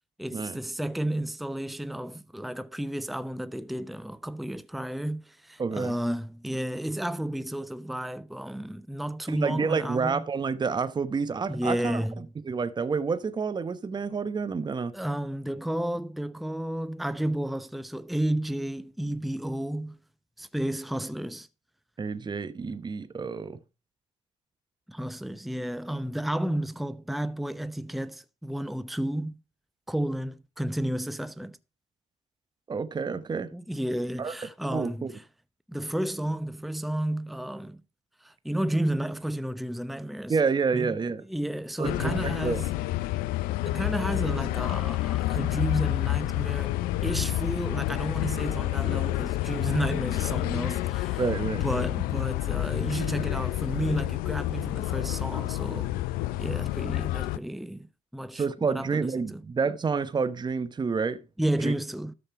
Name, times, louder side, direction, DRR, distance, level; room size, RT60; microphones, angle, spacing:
voice 1, 0.2-10.2 11.5-12.3 14.9-20.0 20.4-21.5 24.9-29.4 29.9-31.6 33.5-35.2 35.7-37.8 38.2-40.4 40.7-40.9 41.3-42.7 43.6-46.8 47.0-51.2 51.6-55.9 56.4-57.9 58.1-59.4 61.4-62.1, right 1 dB, ahead, 0.7 m, -32 dB
voice 2, 5.6-5.9 9.3-12.0 12.5-14.9 22.0-23.6 32.7-33.5 34.2-34.3 34.7-35.1 40.3-41.2 41.8-42.6 51.2-51.7 58.3-61.2 61.6-61.7, right 5 dB, 30° right, 0.9 m, -29 dB
sound 1, 41.8-57.4, left 16 dB, 75° left, 0.5 m, -29 dB
13.0 x 5.4 x 4.7 m
hypercardioid pair, 60°, 15 cm